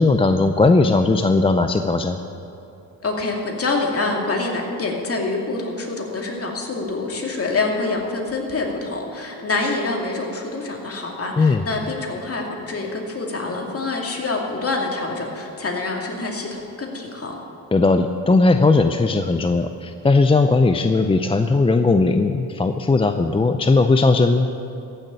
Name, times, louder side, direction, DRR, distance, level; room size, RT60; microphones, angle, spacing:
voice 1, 0.0-2.2 11.4-11.6 17.7-24.5, left 3 dB, 15° left, 7 dB, 0.5 m, -17 dB
voice 2, 3.0-17.4, left 3 dB, 35° left, 0 dB, 2.6 m, -26 dB
14.5 x 6.7 x 8.9 m, 2.9 s
cardioid pair, 85°, 41 cm